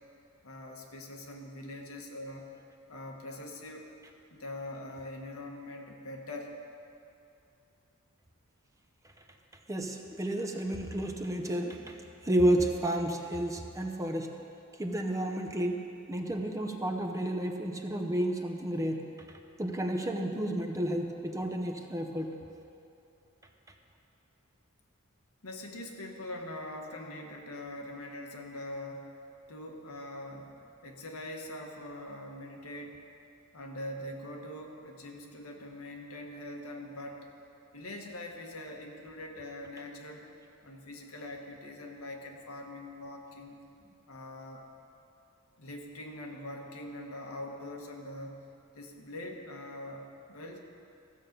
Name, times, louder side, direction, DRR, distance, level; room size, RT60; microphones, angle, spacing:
voice 1, 0.4-2.5 2.9-3.9 4.3-6.6 25.4-29.2 29.5-33.1 33.5-37.3 37.7-40.3 40.6-43.6 44.1-44.6 45.6-50.6, left 1 dB, 85° left, 1 dB, 1.3 m, -43 dB
voice 2, 9.7-14.4 14.8-19.1 19.6-22.3, right 1 dB, 15° right, 3 dB, 0.7 m, -31 dB
15.0 x 7.3 x 5.2 m, 2.6 s
head